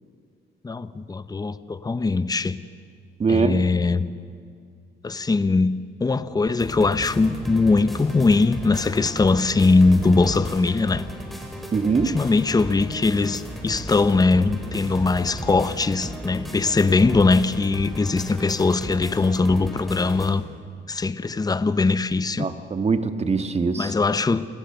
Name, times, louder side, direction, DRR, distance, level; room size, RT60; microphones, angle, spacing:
voice 1, 0.6-2.6 3.3-4.1 5.0-11.0 12.0-20.4 20.9-22.5 23.8-24.4, left 3 dB, 20° left, 14 dB, 0.8 m, -21 dB
voice 2, 3.2-3.6 11.7-12.2 22.4-23.9, right 4 dB, 30° right, 9 dB, 1.5 m, -22 dB
sound 1, 6.6-20.3, equal, ahead, 4.2 m, -35 dB
28.5 x 17.5 x 6.8 m, 2.1 s
cardioid pair, 90°, 20 cm